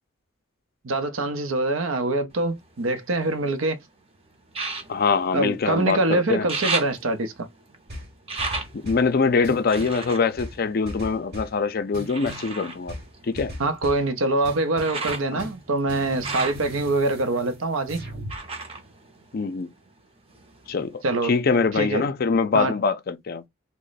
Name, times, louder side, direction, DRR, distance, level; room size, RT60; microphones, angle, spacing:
voice 1, 0.8-3.8 5.3-7.5 13.6-18.0 21.0-21.3 21.7-22.0 22.5-22.7, right 2 dB, 85° right, 0.7 m, -24 dB
sound 1, 2.3-3.7 4.5-6.0 6.3-11.4 12.1-19.9 20.2-21.1 21.5-21.6, right 3 dB, 30° right, 0.6 m, -35 dB
voice 2, 4.9-6.5 8.7-13.0 13.2-13.6 15.3-15.4 19.3-19.7 20.7-23.5, left 4 dB, 50° left, 0.4 m, -24 dB
sound 2, 7.9-9.1 9.4-10.0 10.4-11.6 11.9-12.5 12.9-14.1 14.4-18.4, right 1 dB, 55° right, 1.1 m, -38 dB
3.0 x 2.1 x 4.0 m
head